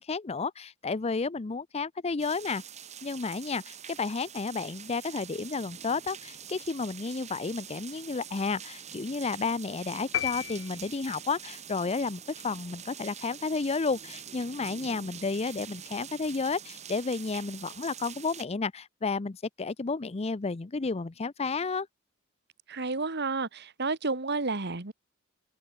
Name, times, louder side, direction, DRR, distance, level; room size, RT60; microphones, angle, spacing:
voice 1, 0.0-2.6 3.0-21.9, left 4 dB, 30° left, 0.6 m, -32 dB
sound 1, 2.2-18.5, right 8 dB, 35° right, 1.2 m, -45 dB
sound 2, 10.1-11.4, left 11 dB, 65° left, 1.2 m, -34 dB
voice 2, 22.7-24.9, right 3 dB, 55° right, 1.9 m, -31 dB
head